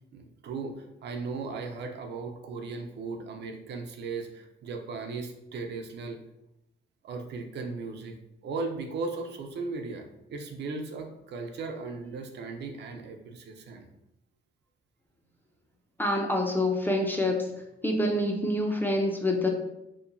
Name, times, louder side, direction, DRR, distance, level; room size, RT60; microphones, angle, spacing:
voice 1, 0.1-6.2 7.0-8.1 8.4-10.0 10.3-13.9, right 4 dB, 60° right, 4 dB, 0.4 m, -37 dB
voice 2, 16.0-17.4 17.8-19.5, left 1 dB, 10° left, 2 dB, 0.4 m, -26 dB
2.9 x 2.1 x 2.5 m, 0.86 s
cardioid pair, 90°, 20 cm